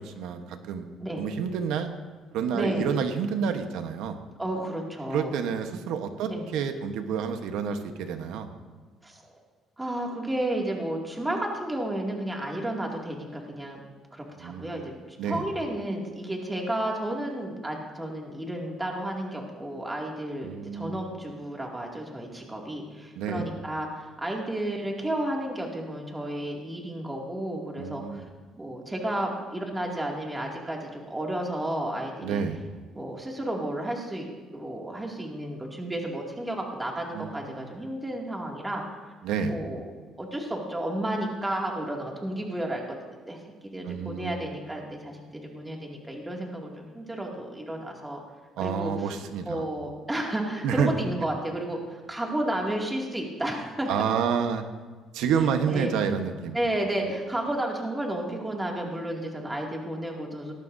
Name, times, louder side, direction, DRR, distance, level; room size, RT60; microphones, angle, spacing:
voice 1, 0.0-0.9 1.2-1.9 2.3-4.2 5.1-8.5 14.4-14.9 15.2-15.4 20.4-21.0 23.2-23.5 27.8-28.3 32.2-32.6 37.1-37.7 39.2-39.6 43.8-44.4 48.6-49.6 50.6-50.9 53.9-54.6 55.1-56.6, right 7 dB, 85° right, 7 dB, 1.1 m, -29 dB
voice 2, 2.5-3.0 4.4-5.4 6.2-6.4 9.0-9.3 9.8-13.8 14.1-28.2 28.6-32.4 32.9-34.3 34.5-38.8 39.5-39.9 40.2-43.0 43.3-48.2 48.6-48.9 49.5-54.0 55.7-55.9 56.5-60.5, right 1 dB, 10° right, -1 dB, 2.3 m, -32 dB
19.0 x 13.5 x 2.7 m, 1.4 s
cardioid pair, 105°, 0 cm